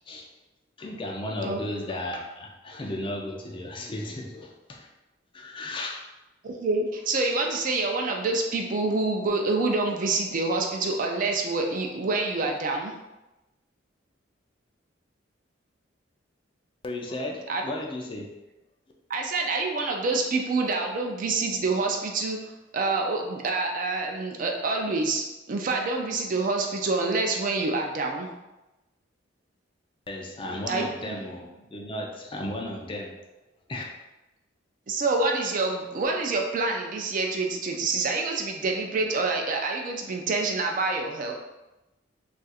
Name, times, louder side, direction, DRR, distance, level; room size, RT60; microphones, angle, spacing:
voice 1, 0.8-4.9 5.3-6.0 16.8-18.3 30.1-33.1 33.7-33.8, left 1 dB, 25° left, 0 dB, 0.4 m, -34 dB
voice 2, 6.4-12.9 17.5-17.6 19.1-22.4 22.7-28.3 30.7-31.2 34.9-41.3, right 3 dB, 45° right, 1 dB, 0.4 m, -27 dB
2.4 x 2.4 x 4.1 m, 1.0 s
head